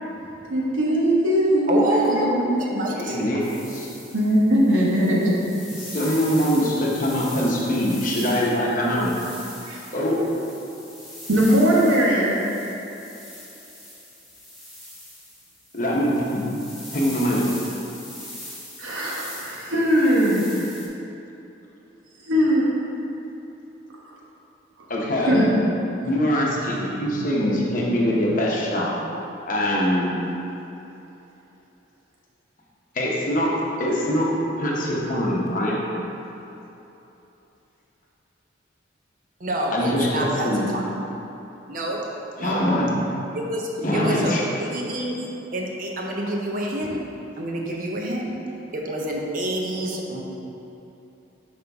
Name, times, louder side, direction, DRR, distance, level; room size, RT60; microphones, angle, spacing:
voice 1, 0.5-2.6 4.1-5.3 9.7-9.8 11.3-12.3 18.8-20.7 22.2-22.7 24.0-24.1 25.2-25.5, equal, 90° right, -5 dB, 1.2 m, -20 dB
voice 2, 1.7-3.3 39.4-41.0 41.7-42.0 42.4-42.6 43.3-45.2 45.5-47.0 47.4-48.3 48.7-50.2, right 1 dB, 45° right, -1 dB, 0.7 m, -27 dB
voice 3, 2.9-3.9 5.8-9.1 9.9-10.2 15.7-16.4 16.9-17.4 24.9-25.4 26.0-28.9 29.5-30.1 32.9-33.5 33.8-34.3 34.6-35.8 39.7-40.7 42.4-42.9 43.8-44.4, equal, 40° left, -4 dB, 0.9 m, -23 dB
sound 1, 3.4-20.9, left 1 dB, ahead, 1.0 m, -41 dB
5.5 x 5.0 x 3.5 m, 3.0 s
head